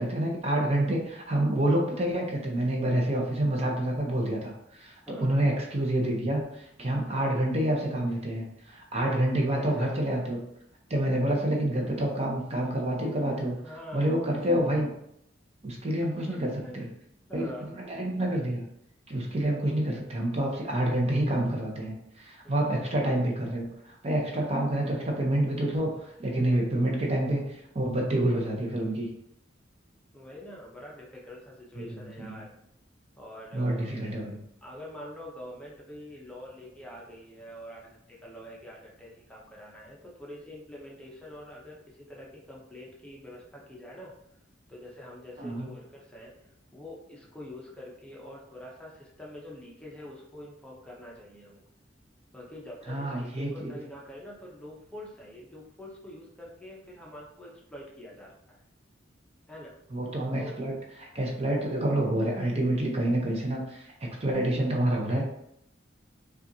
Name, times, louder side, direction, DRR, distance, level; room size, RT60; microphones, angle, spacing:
voice 1, 0.0-10.4 10.9-13.6 13.9-14.9 15.6-16.9 17.3-18.6 19.1-29.1 31.8-32.4 33.5-34.4 45.4-45.7 52.9-53.8 59.9-60.7 61.0-65.2, right 1 dB, 35° right, 0 dB, 0.7 m, -28 dB
voice 2, 5.1-5.4 9.4-10.0 13.0-14.2 16.2-17.0 17.3-17.8 22.4-22.8 30.1-32.5 33.2-34.0 34.6-44.1 44.7-46.3 46.7-51.6 52.3-58.6 59.5-59.8 60.3-60.7, left 1 dB, 5° left, -4 dB, 0.7 m, -45 dB
5.5 x 2.4 x 2.7 m, 0.76 s
head